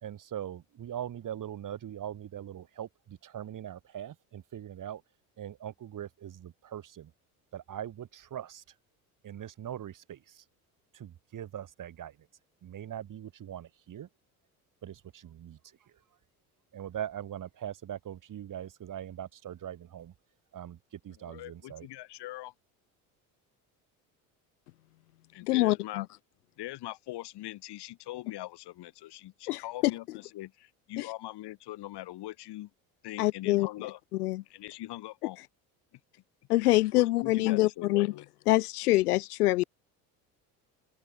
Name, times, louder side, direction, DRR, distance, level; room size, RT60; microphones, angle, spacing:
voice 1, 0.0-5.0 5.4-7.1 7.5-8.6 9.2-10.4 10.9-12.1 12.6-14.1 14.8-15.6 16.7-20.1 20.5-20.8 21.0-21.9, right 10 dB, 45° right, 2.0 m, -41 dB
voice 2, 21.2-22.5 25.3-26.1 26.6-30.0 30.3-32.7 33.0-34.0 34.5-35.4 36.6-38.3, left 16 dB, 60° left, 5.2 m, -41 dB
voice 3, 25.4-26.1 29.5-29.9 31.0-31.1 33.2-33.9 34.1-34.4 36.5-38.1 38.5-39.6, left 18 dB, 85° left, 1.0 m, -25 dB
open air
hypercardioid pair, 65°, 44 cm